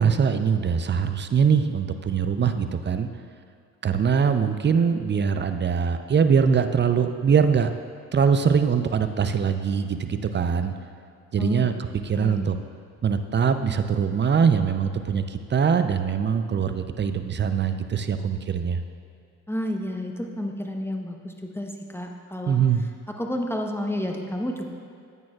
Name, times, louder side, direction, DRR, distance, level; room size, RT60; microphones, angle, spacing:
voice 1, 0.0-3.1 3.8-7.7 8.1-10.7 11.3-12.5 13.0-18.8 22.5-22.8, right 6 dB, 30° right, 9 dB, 0.6 m, -22 dB
voice 2, 11.4-11.7 12.1-12.5 19.5-22.6 23.2-24.7, left 1 dB, 5° left, 2 dB, 0.9 m, -30 dB
10.5 x 8.4 x 2.4 m, 2.4 s
hypercardioid pair, 50°, 36 cm